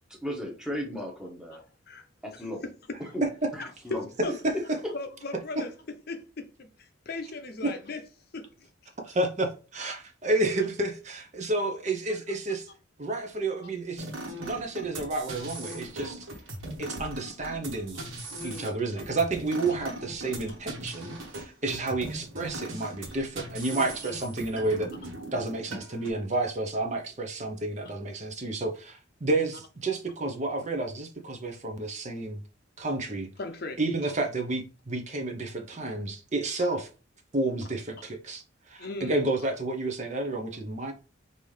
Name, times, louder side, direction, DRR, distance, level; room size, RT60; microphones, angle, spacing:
voice 1, 0.2-1.6 2.2-2.6 3.1-3.2 3.6-4.0, equal, 5° right, 1.1 m, -35 dB
voice 2, 1.9-3.2 3.9-4.4 4.9-8.0 8.3-8.9 11.4-11.5 12.1-12.2 18.1-18.7 33.4-34.1 38.8-39.2, left 3 dB, 50° left, 0.6 m, -39 dB
voice 3, 3.2-3.5 4.4-4.8 7.6-7.7 9.0-12.7 13.0-14.1 14.4-16.3 16.8-18.0 18.4-24.9 25.3-32.4 32.8-33.3 33.8-36.9 37.3-40.9, right 2 dB, 35° right, 0.7 m, -30 dB
sound 1, 14.0-26.1, right 1 dB, 80° right, 1.3 m, -39 dB
5.4 x 2.7 x 3.2 m
head